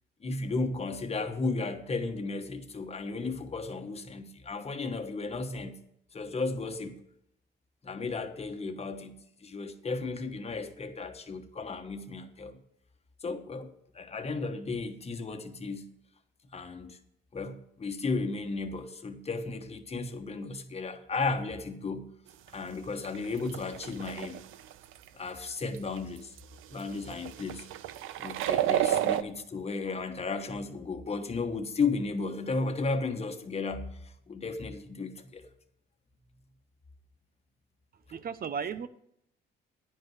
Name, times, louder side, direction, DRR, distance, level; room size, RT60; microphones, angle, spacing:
voice 1, 0.2-5.8 6.1-7.0 7.8-12.6 13.2-15.9 16.5-17.0 17.3-22.1 22.5-24.4 25.1-26.3 26.7-27.7 28.2-35.5, left 3 dB, 30° left, 1.2 m, -34 dB
sound 1, 22.5-22.6 23.0-25.1 25.8-26.0 26.4-26.5 26.7-26.8 27.1-29.2, right 12 dB, 85° right, 0.5 m, -30 dB
voice 2, 38.1-38.9, right 6 dB, 50° right, 0.7 m, -35 dB
10.0 x 5.3 x 8.0 m
cardioid pair, 90°, 20 cm